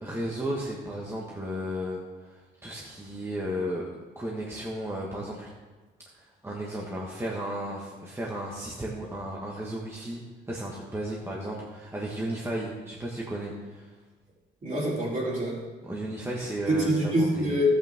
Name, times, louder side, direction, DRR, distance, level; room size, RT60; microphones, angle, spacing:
voice 1, 0.0-5.5 6.1-13.9 15.8-17.6, right 1 dB, 10° right, -4 dB, 1.5 m, -34 dB
voice 2, 14.6-15.6 16.7-17.7, equal, 40° right, -5 dB, 3.7 m, -25 dB
12.5 x 8.4 x 3.7 m, 1.3 s
cardioid pair, 90°, 20 cm